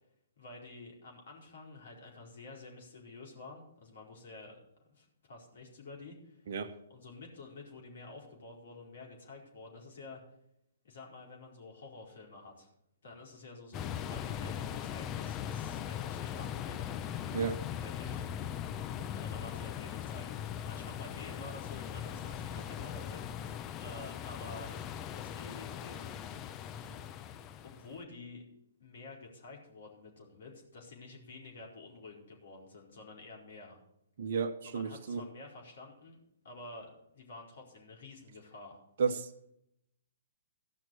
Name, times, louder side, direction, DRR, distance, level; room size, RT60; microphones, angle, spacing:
voice 1, 0.4-4.6 4.8-6.4 6.9-10.2 10.8-12.7 13.0-16.9 17.8-18.3 19.1-23.5 23.8-24.7 25.1-26.3 27.6-28.4 28.8-33.8 34.6-36.2 36.4-38.8, left 3 dB, 60° left, -1 dB, 4.6 m, -50 dB
sound 1, 13.7-28.0, left 9 dB, 25° left, 0.7 m, -40 dB
voice 2, 34.2-35.2 39.0-39.5, right 6 dB, 55° right, 8 dB, 1.1 m, -33 dB
15.0 x 6.1 x 6.5 m, 0.77 s
figure-of-eight pair, 125°, 0 cm